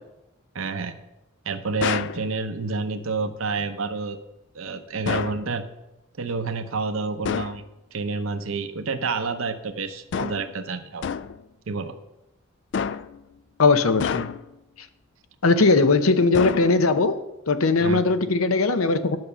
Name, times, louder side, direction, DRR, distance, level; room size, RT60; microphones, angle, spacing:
voice 1, 0.5-0.9 1.4-4.2 4.5-5.7 6.2-7.6 7.9-11.1 11.7-11.9 17.8-18.0, right 4 dB, 75° right, 0.7 m, -29 dB
sound 1, 1.8-2.2 5.1-5.5 7.2-7.6 10.1-10.5 11.0-11.4 12.7-13.2 14.0-14.6 16.3-17.0, left 6 dB, 55° left, 0.3 m, -29 dB
voice 2, 13.6-14.3 15.4-17.2 17.5-19.2, left 3 dB, 80° left, 0.8 m, -19 dB
10.5 x 5.6 x 6.8 m
head